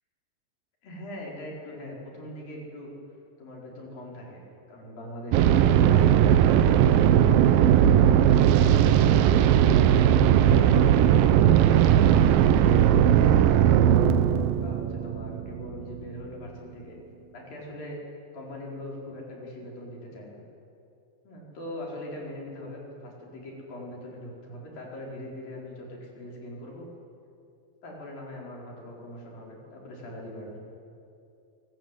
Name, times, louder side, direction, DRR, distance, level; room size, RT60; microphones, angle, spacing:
voice 1, 0.8-3.0 3.4-6.3 6.6-8.7 9.8-12.4 13.0-14.0 14.5-17.0 17.3-18.0 18.3-20.4 21.2-26.9 27.8-30.6, left 1 dB, 65° left, -2 dB, 6.4 m, -41 dB
sound 1, 5.3-16.1, right 10 dB, 75° right, 2.5 m, -19 dB
27.5 x 19.5 x 9.2 m, 2.6 s
omnidirectional pair, 4.3 m